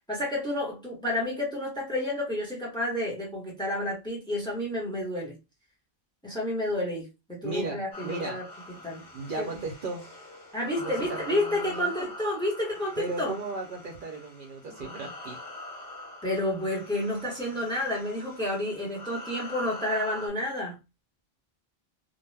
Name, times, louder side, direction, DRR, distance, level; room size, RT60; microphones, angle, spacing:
voice 1, 0.1-5.4 6.2-8.4 8.8-9.0 9.4-9.5 10.5-13.3 16.2-20.8, left 1 dB, 5° left, 1.0 m, -30 dB
voice 2, 7.4-8.4 9.1-10.0 10.8-12.1 13.0-15.4, right 3 dB, 60° right, 0.7 m, -36 dB
sound 1, 7.9-20.3, left 2 dB, 50° left, 1.4 m, -44 dB
2.5 x 2.2 x 3.2 m
omnidirectional pair, 1.1 m